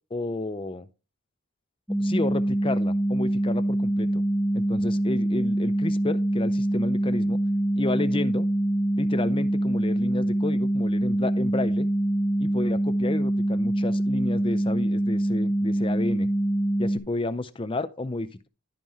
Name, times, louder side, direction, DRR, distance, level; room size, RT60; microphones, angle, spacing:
voice 1, 0.1-0.9 2.0-4.2 4.5-7.4 7.8-8.5 9.0-11.9 12.4-16.3 16.8-18.5, left 2 dB, 25° left, 0.5 m, -31 dB
sound 1, 1.9-17.0, right 1 dB, ahead, 1.1 m, -24 dB
12.0 x 5.5 x 3.0 m
head